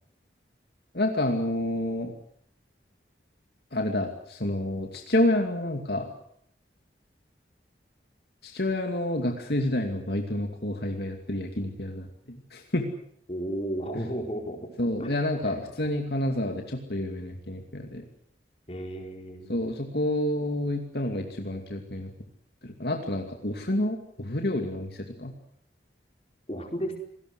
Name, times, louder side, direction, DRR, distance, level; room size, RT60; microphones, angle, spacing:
voice 1, 0.9-2.1 3.7-6.1 8.4-12.9 14.8-18.0 19.5-22.1 22.6-25.3, left 1 dB, 65° left, 3 dB, 2.6 m, -29 dB
voice 2, 13.3-14.7 15.0-15.2 15.4-15.6 18.7-19.5 26.5-27.0, equal, 35° left, 3 dB, 4.8 m, -33 dB
27.0 x 19.0 x 8.0 m, 0.68 s
head